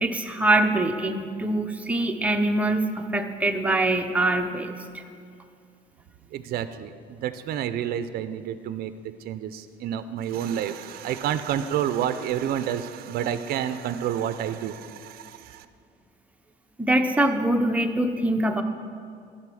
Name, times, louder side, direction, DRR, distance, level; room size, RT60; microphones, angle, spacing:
voice 1, 0.0-5.0 16.8-18.6, right 1 dB, 10° right, 4 dB, 0.7 m, -24 dB
voice 2, 6.3-8.9 9.2-15.7, right 10 dB, 65° right, 11 dB, 0.4 m, -29 dB
12.0 x 4.2 x 6.2 m, 2.3 s
cardioid pair, 110°, 17 cm